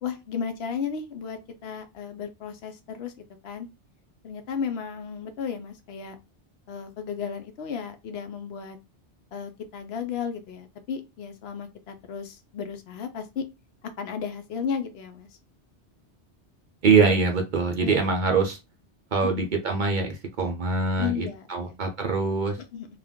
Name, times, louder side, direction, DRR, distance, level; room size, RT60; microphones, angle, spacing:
voice 1, 0.0-3.1 3.4-3.7 4.2-6.2 6.7-8.8 9.3-13.4 13.8-15.3 17.8-18.1 19.2-19.5 21.0-21.8 22.6-22.9, left 7 dB, 70° left, 7 dB, 0.8 m, -34 dB
voice 2, 16.8-18.6 19.1-22.6, right 4 dB, 55° right, 2 dB, 0.6 m, -23 dB
2.4 x 2.2 x 3.5 m, 0.24 s
omnidirectional pair, 1.2 m